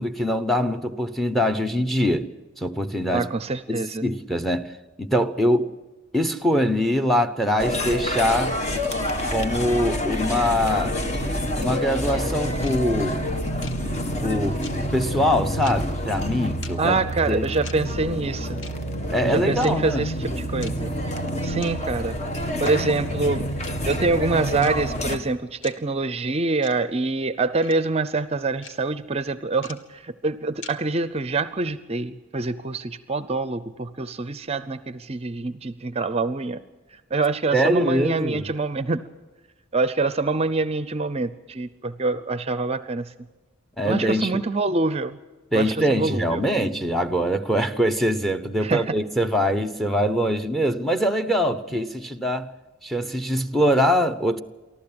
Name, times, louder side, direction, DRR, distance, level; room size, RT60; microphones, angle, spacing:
voice 1, 0.0-2.3 2.6-3.3 3.7-4.7 5.0-5.7 6.1-8.6 9.3-10.9 11.6-13.2 14.2-14.6 14.9-17.0 17.3-17.5 19.1-20.1 22.5-22.6 37.5-38.5 43.8-44.4 45.5-52.5 52.8-54.4, equal, ahead, 0.9 m, -23 dB
voice 2, 3.1-4.1 16.8-18.6 19.2-20.9 21.4-22.2 22.6-23.5 23.9-36.6 37.1-39.1 39.7-43.0 43.8-45.2 45.5-46.4 48.6-49.0, right 3 dB, 30° right, 0.6 m, -25 dB
sound 1, 7.6-25.2, equal, 35° left, 1.6 m, -28 dB
sound 2, 12.6-12.7 13.6-13.7 14.6-14.7 15.6-15.7 16.6-16.7 17.6-17.7 18.6-18.7 19.6-19.7 20.6-20.7 21.6-21.7 22.6-22.7 23.6-23.7 24.6-24.7 25.6-25.7 26.6-26.7 27.6-27.7 28.6-28.7 29.6-29.7 30.6-30.7, left 5 dB, 65° left, 1.6 m, -39 dB
24.0 x 14.5 x 8.8 m
head